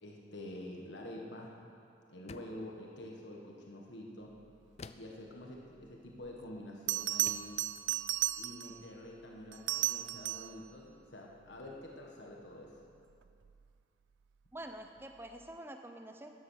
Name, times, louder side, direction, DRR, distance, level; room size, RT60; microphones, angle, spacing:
voice 1, 0.0-1.5 2.1-4.3 4.9-7.6 8.4-12.8, left 1 dB, 80° left, -1 dB, 1.6 m, -47 dB
sound 1, 2.3-2.7 4.8-5.2 6.6-6.7 7.3-7.6, left 4 dB, 35° left, 0.4 m, -50 dB
Bell, 6.3-6.4 6.9-8.8 9.5-10.6 13.3-13.5, right 16 dB, 90° right, 0.4 m, -34 dB
voice 2, 14.5-16.3, right 1 dB, 10° right, 5 dB, 0.7 m, -47 dB
13.0 x 11.0 x 6.5 m, 2.5 s
head